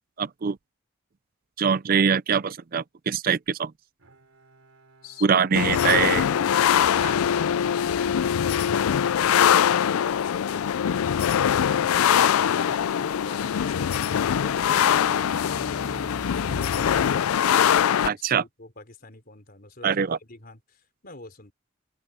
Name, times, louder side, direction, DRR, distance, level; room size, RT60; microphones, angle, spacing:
voice 1, 0.2-0.6 1.6-3.7 5.2-6.2 18.1-18.4 19.8-20.2, right 6 dB, 45° right, 0.4 m, -23 dB
Bowed string instrument, 4.0-8.9, right 3 dB, 80° right, 3.6 m, -57 dB
voice 2, 5.0-5.4 16.5-17.6 18.1-19.9 20.2-21.5, left 2 dB, 45° left, 4.2 m, -44 dB
sound 1, 5.5-18.1, left 9 dB, 90° left, 0.4 m, -22 dB
Truck / Idling, 10.9-17.0, right 1 dB, 20° right, 0.9 m, -44 dB
head